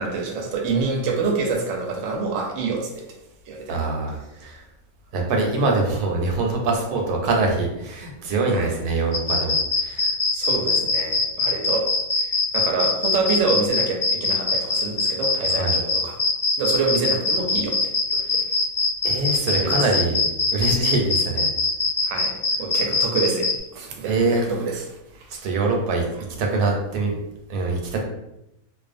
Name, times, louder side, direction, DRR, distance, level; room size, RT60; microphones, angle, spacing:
voice 1, 0.0-3.1 3.5-3.8 5.1-5.3 8.5-8.7 10.3-11.9 12.2-16.2 16.6-17.8 18.1-18.4 19.6-19.8 22.0-25.3, right 4 dB, 65° right, 2 dB, 0.8 m, -27 dB
voice 2, 3.7-4.6 5.1-10.1 15.5-15.8 19.0-20.2 20.5-21.5 24.0-24.5 25.3-26.0 26.4-27.1 27.5-28.0, right 3 dB, 90° right, 1 dB, 1.1 m, -24 dB
sound 1, 9.1-23.5, left 3 dB, 50° left, 0.8 m, -22 dB
2.4 x 2.3 x 2.5 m, 0.86 s
omnidirectional pair, 1.6 m